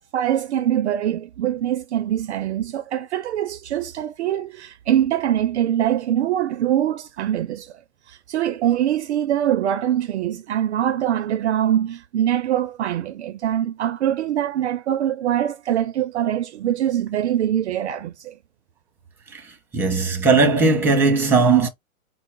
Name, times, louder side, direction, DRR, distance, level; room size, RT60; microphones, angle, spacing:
voice 1, 0.1-7.7 8.1-18.4, right 11 dB, 55° right, 0.5 m, -23 dB
voice 2, 19.7-21.7, right 4 dB, 5° right, 0.8 m, -17 dB
4.6 x 2.0 x 4.4 m
hypercardioid pair, 140°, 42 cm